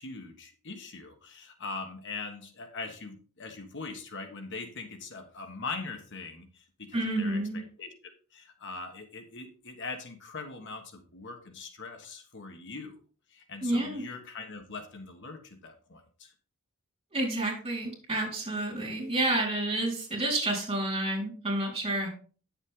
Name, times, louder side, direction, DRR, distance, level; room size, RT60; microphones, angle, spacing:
voice 1, 0.0-12.9 13.3-16.3, left 4 dB, 55° left, 5 dB, 1.3 m, -41 dB
voice 2, 6.9-7.6 13.6-14.0 17.1-22.1, right 1 dB, 25° right, -1 dB, 4.2 m, -29 dB
9.7 x 7.3 x 3.7 m, 0.40 s
head